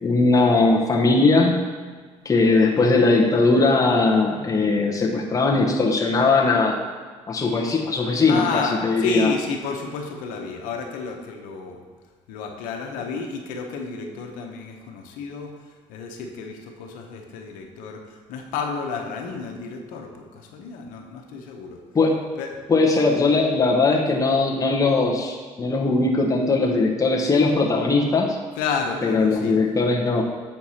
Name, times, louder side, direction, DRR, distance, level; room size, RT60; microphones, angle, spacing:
voice 1, 0.0-1.6 2.2-6.8 7.3-9.3 21.9-22.2 22.7-28.4 29.0-30.2, left 3 dB, 25° left, 0 dB, 1.0 m, -19 dB
voice 2, 8.3-11.8 12.3-15.5 15.9-18.0 18.3-21.8 22.4-22.5 23.1-23.2 28.6-29.5, left 5 dB, 80° left, 3 dB, 1.0 m, -30 dB
7.5 x 4.6 x 4.3 m, 1.5 s
supercardioid pair, 85°, 14 cm